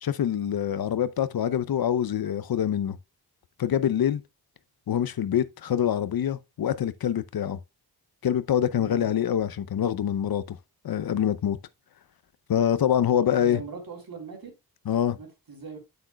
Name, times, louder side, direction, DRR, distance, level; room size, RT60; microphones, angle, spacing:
voice 1, 0.0-3.0 3.6-4.2 4.9-7.6 8.2-10.6 10.8-11.6 12.5-13.6 14.9-15.2, left 9 dB, 65° left, 0.6 m, -25 dB
voice 2, 8.7-9.1 13.2-14.5 15.2-15.8, right 5 dB, 60° right, 3.4 m, -41 dB
8.7 x 7.8 x 2.2 m
wide cardioid pair, 125°, 39 cm